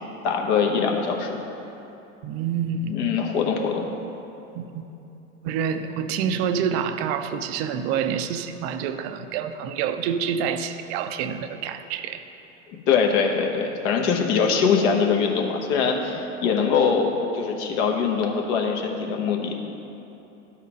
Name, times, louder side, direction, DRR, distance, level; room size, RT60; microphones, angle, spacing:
voice 1, 0.2-1.4 2.9-3.9 12.9-19.5, left 6 dB, 60° left, 2 dB, 1.2 m, -22 dB
voice 2, 2.2-3.0 4.5-4.8 5.4-12.2, right 7 dB, 55° right, 9 dB, 0.6 m, -27 dB
11.5 x 4.3 x 5.1 m, 2.9 s
hypercardioid pair, 95°, 39 cm